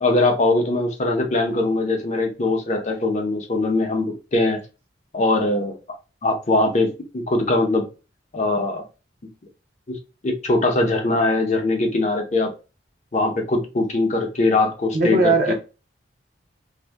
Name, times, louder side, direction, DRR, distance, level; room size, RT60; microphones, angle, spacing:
voice 1, 0.0-4.6 5.1-5.8 6.2-7.9 8.3-8.8 9.2-9.3 9.9-10.0 10.2-12.5 13.1-15.5, left 2 dB, 40° left, 0.6 m, -21 dB
voice 2, 14.9-15.5, right 2 dB, 50° right, 0.7 m, -18 dB
2.6 x 2.1 x 3.2 m
head